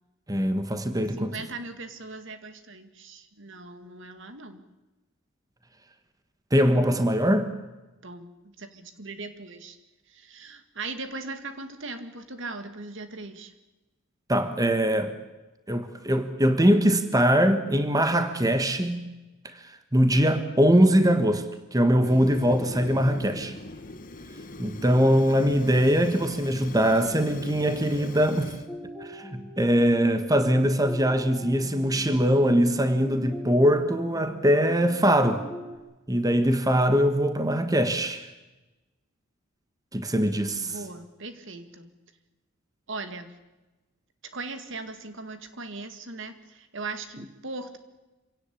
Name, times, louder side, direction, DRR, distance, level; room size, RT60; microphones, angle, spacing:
voice 1, 0.3-1.3 6.5-7.5 14.3-15.2 15.7-19.1 19.5-19.6 19.9-21.4 21.7-23.5 24.6-28.6 29.0-35.4 36.1-38.3 39.9-40.7, equal, 20° right, 1.4 m, -22 dB
voice 2, 1.2-4.6 8.0-9.8 10.1-13.5 26.8-27.4 40.6-41.9 42.9-43.3 44.3-47.8, right 3 dB, 65° right, 2.2 m, -39 dB
Fire, 22.0-28.7, left 2 dB, 45° left, 1.7 m, -41 dB
sound 1, 27.0-35.8, equal, 5° right, 4.8 m, -42 dB
26.0 x 17.5 x 8.6 m
head